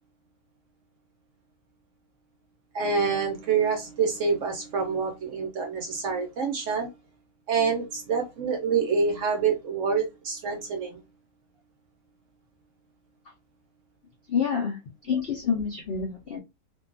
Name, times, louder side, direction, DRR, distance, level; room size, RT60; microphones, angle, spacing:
voice 1, 2.7-6.9 7.5-11.0, right 5 dB, 65° right, 0.8 m, -26 dB
voice 2, 14.3-14.8 15.0-16.4, left 6 dB, 90° left, 0.5 m, -27 dB
2.6 x 2.3 x 2.4 m
omnidirectional pair, 1.7 m